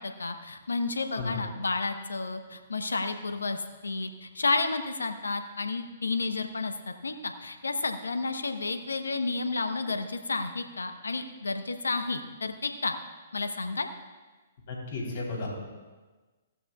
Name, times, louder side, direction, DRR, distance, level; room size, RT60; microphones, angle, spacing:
voice 1, 0.0-12.9 13.3-13.9, left 3 dB, 80° left, 8 dB, 1.0 m, -31 dB
voice 2, 14.7-15.6, left 3 dB, 50° left, -1 dB, 3.7 m, -34 dB
15.5 x 12.5 x 2.4 m, 1.3 s
figure-of-eight pair, 125°, 0 cm